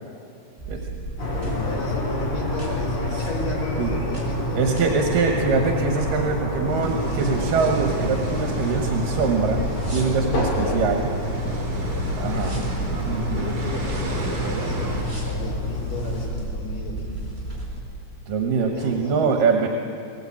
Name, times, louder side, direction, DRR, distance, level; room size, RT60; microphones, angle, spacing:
sound 1, 0.6-17.8, right 2 dB, 15° right, 4.7 m, -33 dB
sound 2, 1.2-16.3, left 2 dB, 60° left, 5.7 m, -29 dB
voice 1, 1.3-5.3 6.4-6.9 12.3-12.7 13.3-17.3 18.7-19.4, left 2 dB, 85° left, -2 dB, 5.7 m, -35 dB
voice 2, 4.6-9.6 9.9-11.1 12.2-12.6 13.1-13.6 18.3-19.7, right 4 dB, 80° right, 2 dB, 3.0 m, -23 dB
sound 3, 6.7-15.0, right 3 dB, 50° right, 4.1 m, -32 dB
19.5 x 19.5 x 8.6 m, 2.5 s
omnidirectional pair, 3.8 m